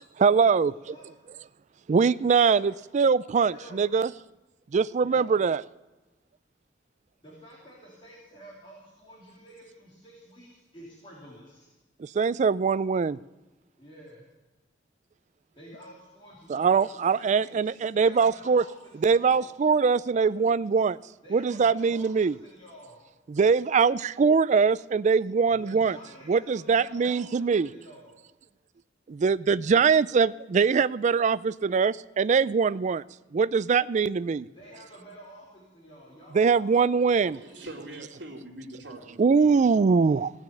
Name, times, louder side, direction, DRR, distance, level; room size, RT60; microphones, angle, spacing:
voice 1, 0.2-0.7 1.9-4.1 4.7-5.6 12.0-13.2 16.5-18.7 19.0-21.0 21.3-22.4 23.3-26.0 26.3-27.7 29.1-33.0 33.3-34.5 36.3-37.4 39.2-40.3, right 5 dB, 40° right, 18 dB, 0.3 m, -22 dB
voice 2, 3.4-3.8 5.0-5.4 7.2-11.7 13.8-14.2 15.6-19.5 20.2-20.5 21.2-23.0 25.5-28.1 34.4-36.9 37.1-37.7, equal, 30° left, -6 dB, 3.6 m, -49 dB
voice 3, 37.3-39.8, right 1 dB, 80° right, -6 dB, 2.8 m, -43 dB
17.5 x 6.3 x 8.4 m, 1.1 s
head